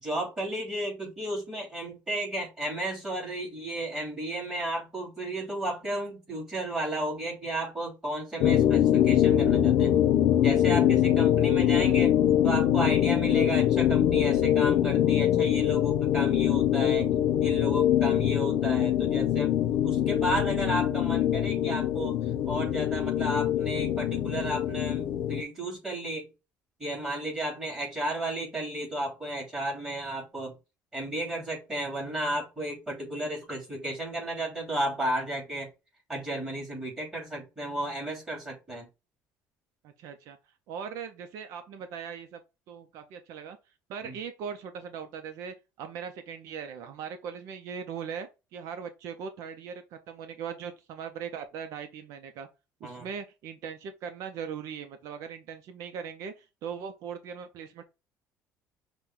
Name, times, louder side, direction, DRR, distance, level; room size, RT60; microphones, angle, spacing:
voice 1, 0.0-9.9 10.4-12.2 12.4-17.1 17.4-22.2 22.5-26.3 26.8-30.5 30.9-35.7 36.1-38.9 44.0-44.1 52.8-53.1, right 1 dB, 10° right, 2.8 m, -33 dB
sound 1, 8.4-25.4, left 11 dB, 80° left, 0.6 m, -24 dB
voice 2, 39.8-40.4 40.7-42.4 42.7-43.6 43.9-52.5 52.8-57.8, right 7 dB, 70° right, 0.6 m, -40 dB
6.0 x 2.2 x 3.7 m
cardioid pair, 145°, 6 cm